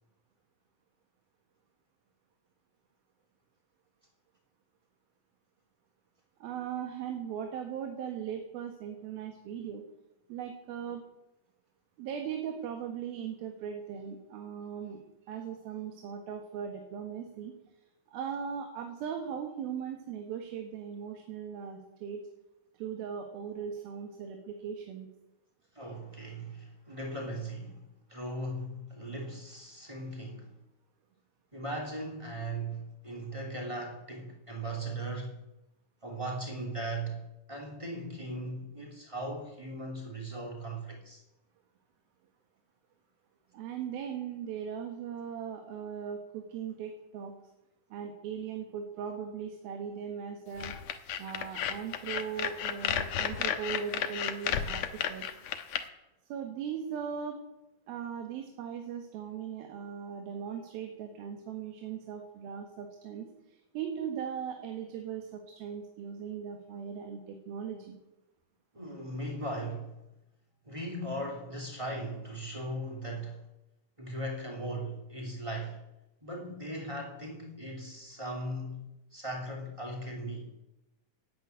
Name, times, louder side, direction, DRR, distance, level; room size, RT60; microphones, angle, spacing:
voice 1, 6.4-9.8 10.3-11.0 12.0-17.5 18.1-22.2 22.8-25.1 43.5-47.3 47.9-50.7 51.2-55.3 56.3-57.4 57.9-68.0, right 7 dB, 90° right, 3.4 m, -39 dB
voice 2, 25.7-30.5 31.5-35.3 36.0-37.2 37.5-41.2 68.7-69.9 70.6-73.4 74.0-75.8 76.2-78.8 79.1-80.5, right 1 dB, 10° right, 2.4 m, -38 dB
sound 1, 50.6-55.8, left 9 dB, 65° left, 1.8 m, -32 dB
15.0 x 9.1 x 9.4 m
omnidirectional pair, 4.1 m